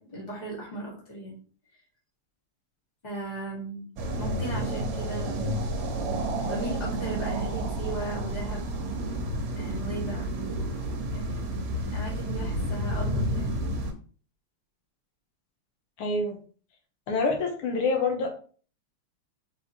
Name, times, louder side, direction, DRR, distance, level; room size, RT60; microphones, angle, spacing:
voice 1, 0.0-1.4 3.0-3.9 4.2-5.7 6.4-8.7 9.5-10.3 11.1-11.4 11.7-13.6, right 2 dB, 20° left, -4 dB, 1.7 m, -37 dB
sound 1, 4.0-13.9, right 1 dB, 70° right, 1.6 m, -30 dB
voice 2, 16.0-16.4 17.1-18.3, left 3 dB, 80° left, 3 dB, 1.8 m, -26 dB
4.4 x 4.3 x 2.8 m, 0.41 s
omnidirectional pair, 2.4 m